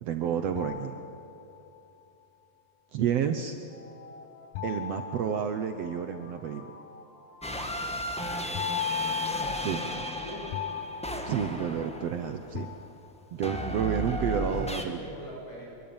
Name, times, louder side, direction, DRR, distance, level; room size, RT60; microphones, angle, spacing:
voice 1, 0.0-1.0 2.9-3.5 4.6-6.7 9.6-10.0 11.3-12.7 13.3-15.1, right 8 dB, 65° right, 8 dB, 1.7 m, -30 dB
sound 1, 0.6-1.8 4.5-6.2 8.5-12.1 12.5-13.5, left 9 dB, 75° left, 2.2 m, -37 dB
sound 2, 3.7-12.1, left 3 dB, 45° left, 3.0 m, -52 dB
sound 3, 7.4-12.5 13.4-14.8, equal, 5° left, 0.4 m, -34 dB
voice 2, 8.1-8.6 10.1-10.5 11.4-11.8 13.9-15.7, left 1 dB, 60° left, -3 dB, 8.5 m, -44 dB
25.0 x 23.0 x 8.8 m, 2.8 s
omnidirectional pair, 3.7 m